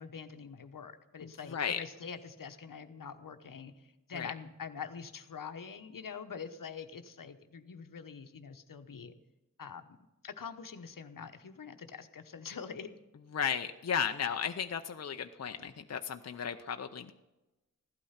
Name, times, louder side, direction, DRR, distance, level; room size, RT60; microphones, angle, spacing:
voice 1, 0.0-9.1 9.6-9.8 10.2-12.9, left 6 dB, 80° left, 8 dB, 1.0 m, -45 dB
voice 2, 1.2-1.8 4.2-4.3 13.3-17.1, left 7 dB, 50° left, 7 dB, 0.6 m, -35 dB
15.5 x 12.0 x 5.7 m, 1.0 s
wide cardioid pair, 95°, 32 cm